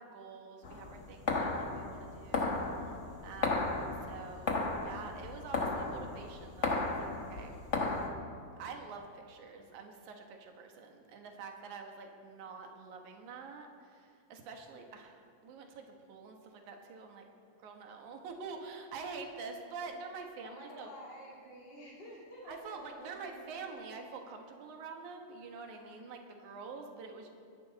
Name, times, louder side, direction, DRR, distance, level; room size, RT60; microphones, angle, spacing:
voice 1, 0.0-3.0 3.2-7.6 8.6-17.3 17.6-20.9 22.5-27.3, right 4 dB, 85° right, 3 dB, 2.8 m, -47 dB
sound 1, 0.6-8.1, left 3 dB, 90° left, 0.6 m, -35 dB
voice 2, 20.4-23.9, equal, 35° left, -5 dB, 3.7 m, -50 dB
23.0 x 11.0 x 4.1 m, 2.4 s
omnidirectional pair, 3.3 m